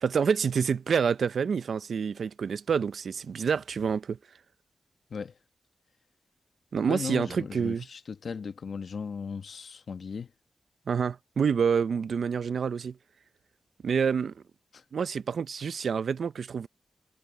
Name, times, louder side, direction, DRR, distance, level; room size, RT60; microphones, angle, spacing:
voice 1, 0.0-4.2 6.7-7.9 10.9-13.0 13.8-14.4 14.9-16.7, right 6 dB, 65° right, 0.5 m, -27 dB
voice 2, 6.9-10.3 14.7-14.8, left 5 dB, 55° left, 1.2 m, -37 dB
wide cardioid pair, 155°, 0 cm